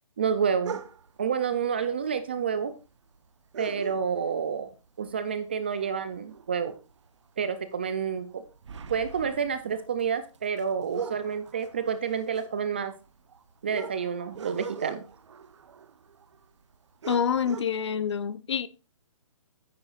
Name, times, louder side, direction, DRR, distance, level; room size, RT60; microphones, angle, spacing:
voice 1, 0.2-0.8 1.2-2.7 3.6-4.7 5.0-6.7 7.4-8.4 8.9-12.9 13.6-15.0, right 6 dB, 20° right, 0.3 m, -29 dB
sound 1, 0.6-1.2 2.2-2.3 2.6-2.7 3.5-4.5 4.8-5.1 5.5-7.1 7.4-7.6 8.1-16.4 16.7-16.8 17.0-17.6, right 6 dB, 55° right, 0.9 m, -41 dB
voice 2, 17.1-18.7, left 7 dB, 55° left, 0.6 m, -27 dB
9.8 x 9.5 x 2.4 m
hypercardioid pair, 165°, 18 cm